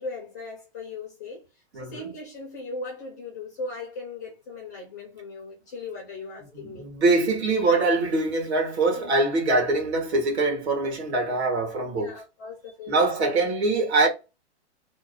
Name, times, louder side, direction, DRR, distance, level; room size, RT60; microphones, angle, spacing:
voice 1, 0.0-6.9 8.9-9.1 11.9-12.9, left 3 dB, 15° left, 0.4 m, -38 dB
voice 2, 1.7-2.0 6.6-12.2 12.9-14.1, right 3 dB, 70° right, 1.7 m, -23 dB
3.0 x 2.1 x 3.7 m
hypercardioid pair, 165°, 34 cm